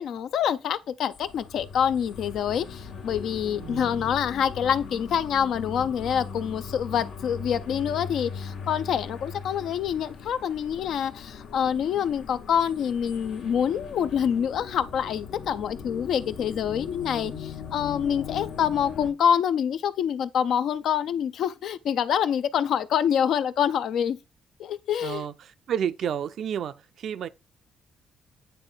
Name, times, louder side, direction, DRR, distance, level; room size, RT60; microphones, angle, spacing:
voice 1, 0.0-24.2 24.6-25.3, left 8 dB, 70° left, 0.5 m, -26 dB
sound 1, 1.1-19.1, left 6 dB, 90° left, 1.4 m, -39 dB
voice 2, 3.6-4.0 17.2-17.4 25.0-25.3 25.7-26.7 27.0-27.3, right 8 dB, 65° right, 0.4 m, -30 dB
9.0 x 3.2 x 3.8 m
cardioid pair, 90°, 0 cm